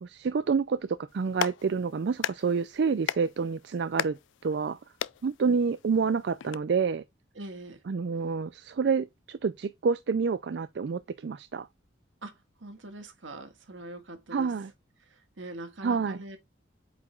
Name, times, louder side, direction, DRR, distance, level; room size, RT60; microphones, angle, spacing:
voice 1, 0.0-4.8 5.2-7.0 7.9-11.7 14.3-14.7 15.8-16.2, right 5 dB, 60° right, 0.4 m, -28 dB
Clapping, 1.1-6.6, left 9 dB, 75° left, 0.3 m, -37 dB
voice 2, 7.4-7.8 12.2-14.5 15.0-16.4, right 2 dB, 75° right, 1.7 m, -43 dB
8.2 x 4.9 x 2.3 m
head